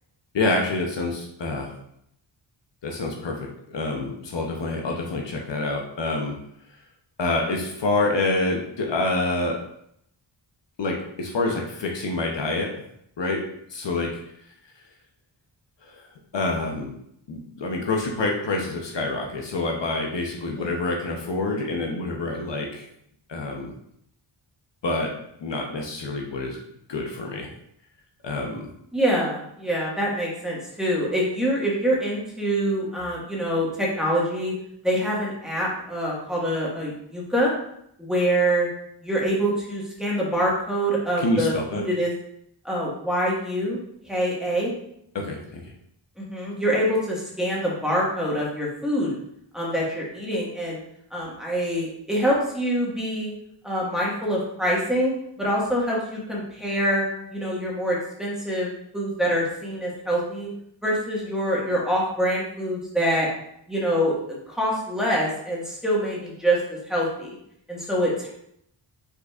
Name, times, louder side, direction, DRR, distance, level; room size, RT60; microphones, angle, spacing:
voice 1, 0.3-1.7 2.8-6.3 7.2-9.6 10.8-12.7 13.2-13.4 13.7-14.2 15.9-16.0 16.3-16.9 17.3-22.9 23.3-23.7 24.8-25.1 25.4-26.6 26.9-27.5 28.2-28.7 41.2-41.8 45.1-45.6, left 2 dB, 65° left, 1 dB, 0.8 m, -27 dB
voice 2, 28.9-34.5 34.8-37.5 38.0-38.7 39.0-42.1 42.6-43.8 44.0-44.7 46.2-49.2 49.5-50.8 51.1-53.3 53.6-55.1 55.4-57.0 57.3-60.5 60.8-63.3 63.7-67.4 67.7-68.3, equal, ahead, -5 dB, 1.6 m, -25 dB
5.4 x 4.1 x 2.4 m, 0.73 s
wide cardioid pair, 80°, 48 cm